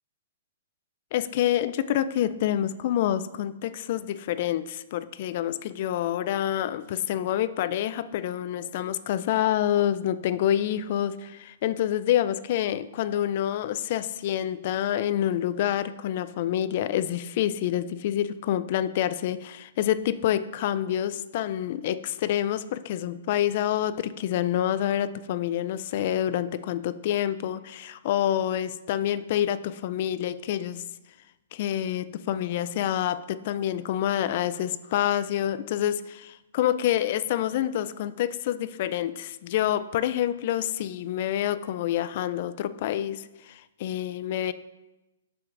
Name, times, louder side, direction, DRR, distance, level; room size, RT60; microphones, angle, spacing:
voice 1, 1.1-30.8 31.5-44.5, left 11 dB, 45° left, 14 dB, 0.3 m, -27 dB
12.0 x 4.5 x 2.5 m, 1.0 s
hypercardioid pair, 155°, 0 cm